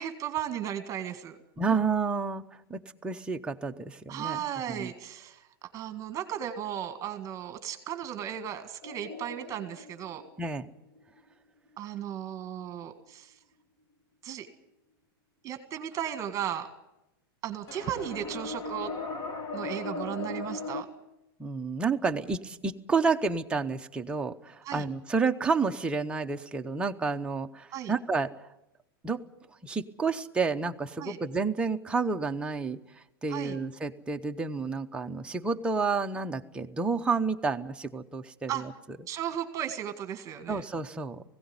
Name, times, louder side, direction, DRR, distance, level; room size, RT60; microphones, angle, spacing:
voice 1, 0.0-1.4 4.1-5.4 5.7-10.2 11.8-13.4 14.2-14.5 15.4-16.7 17.4-18.9 19.5-20.9 24.6-24.8 27.7-27.9 31.0-31.2 33.3-33.6 38.5-38.6 39.1-40.6, right 10 dB, 25° right, 8 dB, 1.9 m, -35 dB
voice 2, 1.6-2.4 2.7-4.4 4.7-4.9 10.4-10.7 21.4-28.3 29.0-29.2 29.6-32.8 33.2-38.7 40.5-41.2, right 4 dB, 10° right, 4 dB, 0.8 m, -30 dB
sound 1, 8.8-11.2 17.7-20.8, left 3 dB, 25° left, 1.6 m, -38 dB
18.5 x 16.5 x 9.7 m, 0.92 s
supercardioid pair, 145°, 12 cm